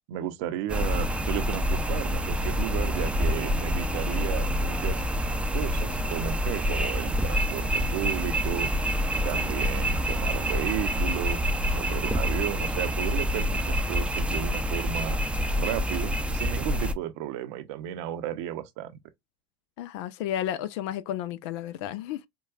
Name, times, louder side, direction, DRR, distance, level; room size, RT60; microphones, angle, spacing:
voice 1, 0.1-5.0 5.5-8.7 9.2-11.4 11.7-15.2 15.6-18.9, right 11 dB, 65° right, 0.7 m, -34 dB
sound 1, 0.7-16.9, equal, 5° right, 0.5 m, -27 dB
voice 2, 19.8-22.3, left 11 dB, 65° left, 0.4 m, -32 dB
4.6 x 2.2 x 2.3 m
hypercardioid pair, 75°, 15 cm